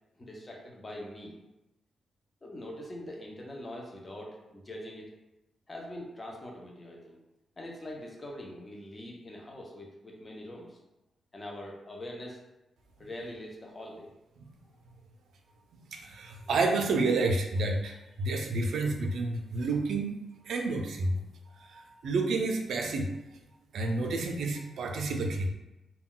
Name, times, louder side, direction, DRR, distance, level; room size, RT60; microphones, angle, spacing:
voice 1, 0.2-1.4 2.4-5.1 5.7-7.2 7.6-10.8 11.3-12.4 13.0-14.1 16.5-16.6, left 1 dB, 20° left, -1 dB, 0.5 m, -43 dB
voice 2, 15.9-20.1 20.5-21.1 21.7-23.1 23.7-25.5, right 3 dB, 75° right, 2 dB, 0.4 m, -29 dB
2.2 x 2.2 x 3.7 m, 0.95 s
wide cardioid pair, 150°, 0 cm